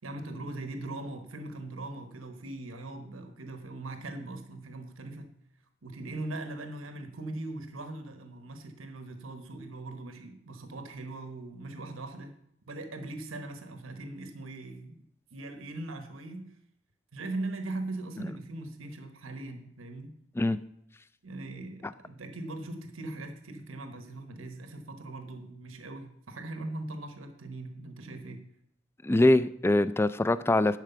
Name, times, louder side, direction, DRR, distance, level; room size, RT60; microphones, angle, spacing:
voice 1, 0.0-5.3 5.8-12.4 12.7-15.0 15.3-16.5 17.1-20.1 21.2-28.4, right 2 dB, 90° right, 7 dB, 1.1 m, -40 dB
voice 2, 29.0-30.8, left 2 dB, 10° left, 15 dB, 0.3 m, -23 dB
11.0 x 4.9 x 6.8 m, 0.75 s
head